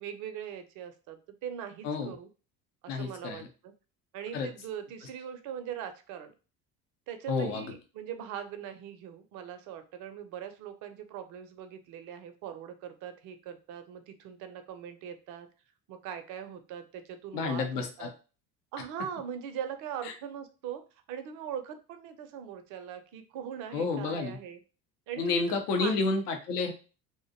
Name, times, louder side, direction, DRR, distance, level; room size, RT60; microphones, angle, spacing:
voice 1, 0.0-2.3 2.8-3.7 4.1-6.3 7.1-15.5 15.9-18.1 18.7-20.8 21.1-24.6 25.1-26.0, right 9 dB, 40° right, 9 dB, 0.5 m, -41 dB
voice 2, 2.9-3.5 4.3-4.5 7.3-7.7 17.3-18.1 23.7-24.4 25.2-26.7, left 4 dB, 70° left, 5 dB, 0.7 m, -30 dB
2.6 x 2.0 x 2.7 m, 0.34 s
figure-of-eight pair, 60°, 49 cm